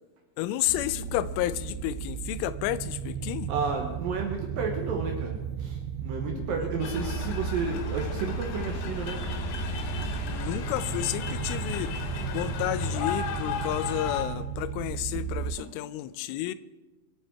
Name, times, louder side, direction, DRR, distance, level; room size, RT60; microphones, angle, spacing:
voice 1, 0.4-3.5 6.3-6.7 10.2-11.9 12.3-16.5, left 14 dB, 90° left, 3.1 m, -31 dB
sound 1, 0.7-15.6, right 8 dB, 85° right, 2.5 m, -35 dB
voice 2, 3.5-9.2 15.6-15.7, right 4 dB, 70° right, 2.3 m, -32 dB
sound 2, 6.8-14.2, left 5 dB, 70° left, 2.4 m, -34 dB
24.5 x 8.6 x 4.6 m
omnidirectional pair, 5.5 m